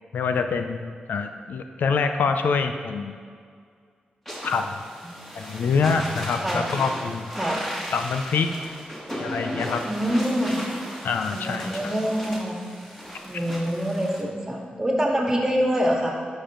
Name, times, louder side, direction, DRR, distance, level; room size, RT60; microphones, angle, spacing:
voice 1, 0.1-3.2 4.4-4.8 5.4-7.3 7.9-8.5 9.2-9.8 11.0-11.9 13.3-13.4, left 5 dB, 85° left, 7 dB, 0.5 m, -25 dB
sound 1, 4.2-14.2, equal, 10° left, 2.2 m, -36 dB
voice 2, 9.8-10.6 11.3-12.6 13.2-16.1, equal, 20° right, -1 dB, 1.9 m, -25 dB
11.5 x 5.4 x 3.8 m, 2.1 s
cardioid pair, 70°, 3 cm